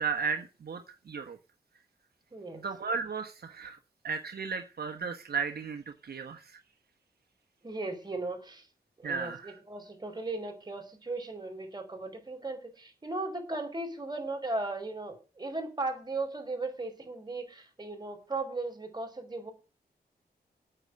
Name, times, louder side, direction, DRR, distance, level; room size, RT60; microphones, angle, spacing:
voice 1, 0.0-1.4 2.6-3.8 4.0-6.6 9.0-9.6, right 5 dB, 65° right, 1.4 m, -35 dB
voice 2, 2.3-2.6 7.6-8.7 9.0-19.5, right 2 dB, 25° right, 4.9 m, -37 dB
9.0 x 8.2 x 9.3 m
wide cardioid pair, 125°, 17 cm